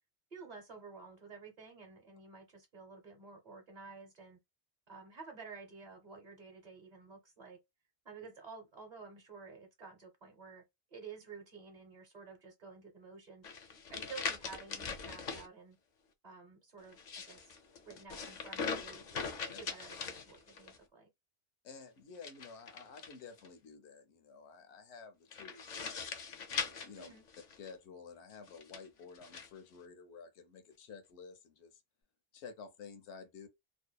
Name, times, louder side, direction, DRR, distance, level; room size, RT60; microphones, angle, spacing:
voice 1, 0.3-4.4 4.9-7.6 8.0-10.6 10.9-13.5 13.9-15.8 16.2-17.6 17.8-21.1 27.0-27.2, right 5 dB, 45° right, 0.8 m, -51 dB
sound 1, 13.4-15.5 16.9-20.8 22.1-23.5 25.3-27.7 28.5-29.5, left 5 dB, 55° left, 0.5 m, -41 dB
voice 2, 21.6-26.2 26.8-27.1 27.6-31.8 32.3-33.5, left 5 dB, 85° left, 0.9 m, -52 dB
2.7 x 2.1 x 2.2 m
omnidirectional pair, 1.1 m